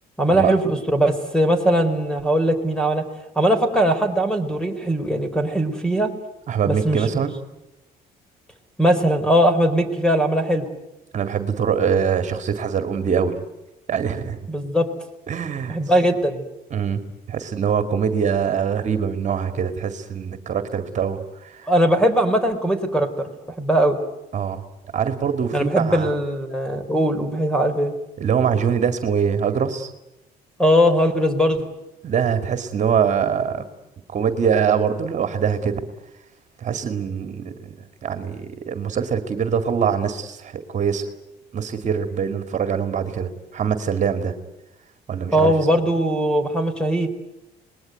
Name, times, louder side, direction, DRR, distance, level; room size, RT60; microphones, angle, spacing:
voice 1, 0.2-3.0 3.4-6.1 6.7-7.2 8.8-10.7 14.5-14.9 15.7-16.4 21.7-23.3 23.6-24.0 25.5-27.9 30.6-31.6 45.3-47.1, equal, 5° left, 9 dB, 4.1 m, -20 dB
voice 2, 6.5-7.3 11.1-13.4 13.9-14.4 15.3-15.8 16.7-17.0 17.3-21.7 24.3-24.6 24.9-26.1 28.2-29.9 32.0-33.6 34.1-35.8 36.6-37.8 38.0-41.1 41.5-44.3 45.1-45.5, right 7 dB, 45° right, 8 dB, 2.3 m, -23 dB
26.0 x 20.5 x 9.4 m, 0.92 s
cardioid pair, 110°, 17 cm